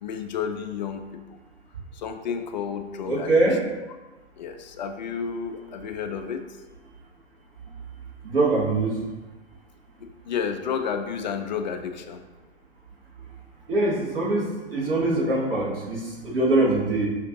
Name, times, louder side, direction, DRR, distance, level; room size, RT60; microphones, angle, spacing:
voice 1, 0.0-1.0 2.0-3.3 4.4-6.4 10.3-12.2, left 7 dB, 45° left, 6 dB, 0.4 m, -31 dB
voice 2, 3.1-3.6 8.2-8.9 13.7-17.1, right 2 dB, 60° right, -4 dB, 1.3 m, -23 dB
5.1 x 2.5 x 2.9 m, 1.2 s
figure-of-eight pair, 105°, 32 cm